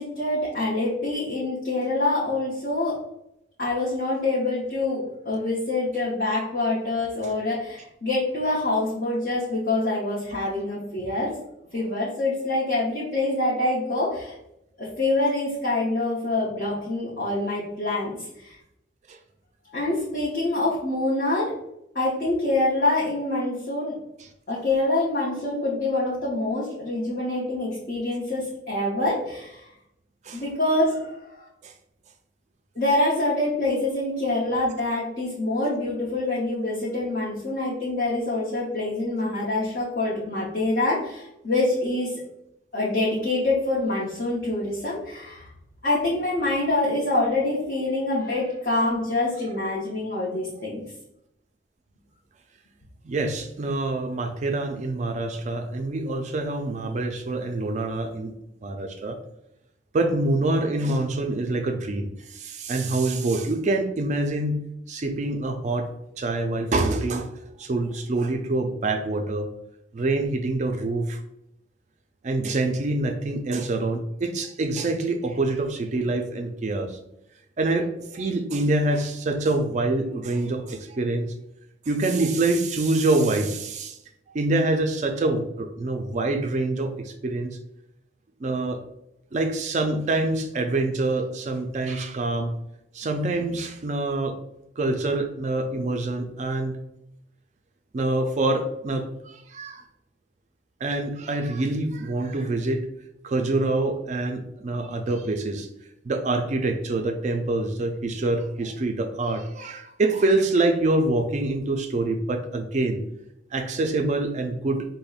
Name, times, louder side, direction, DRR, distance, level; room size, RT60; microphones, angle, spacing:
voice 1, 0.0-3.0 3.6-11.3 11.7-14.4 14.8-18.6 19.7-21.5 21.9-23.9 24.5-29.7 30.3-31.5 32.7-42.2 42.7-45.5 45.8-50.8, left 2 dB, 50° left, -8 dB, 0.8 m, -25 dB
voice 2, 53.0-58.3 58.6-59.2 59.9-64.6 64.9-65.9 66.2-67.3 67.6-69.5 69.9-71.2 72.2-77.0 77.6-81.3 81.9-84.0 84.3-87.6 88.4-88.8 89.3-92.6 92.9-94.4 94.8-96.8 97.9-99.8 100.8-102.9 103.2-105.7 106.0-113.0 113.5-114.9, right 2 dB, 35° right, 5 dB, 0.3 m, -26 dB
5.1 x 2.1 x 2.3 m, 0.82 s
head